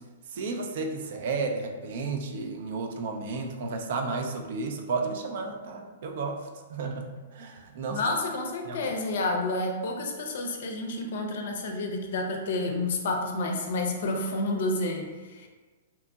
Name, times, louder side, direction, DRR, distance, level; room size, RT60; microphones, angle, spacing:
voice 1, 0.3-6.4 6.7-8.1 8.7-8.9, right 4 dB, 60° right, 3 dB, 0.4 m, -32 dB
voice 2, 7.9-15.5, left 2 dB, 65° left, 3 dB, 0.5 m, -30 dB
2.8 x 2.6 x 2.3 m, 1.3 s
hypercardioid pair, 125°, 0 cm